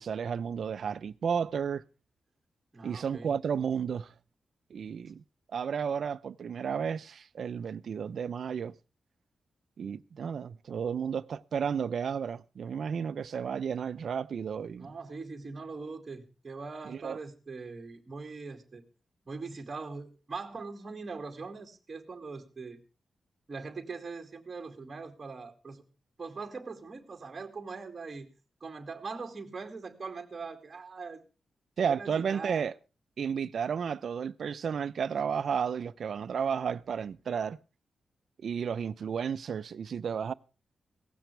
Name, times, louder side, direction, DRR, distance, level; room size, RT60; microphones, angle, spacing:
voice 1, 0.0-1.8 2.8-4.1 4.7-5.2 5.5-8.7 9.8-14.9 16.9-17.2 31.8-32.7 33.2-37.6 38.4-40.3, right 7 dB, 65° right, 0.7 m, -32 dB
voice 2, 2.7-3.3 14.8-18.8 19.3-22.8 23.5-25.8 26.2-28.3 28.6-31.2 31.9-32.7, right 4 dB, 30° right, 2.3 m, -41 dB
17.5 x 15.5 x 3.3 m
wide cardioid pair, 150°, 0 cm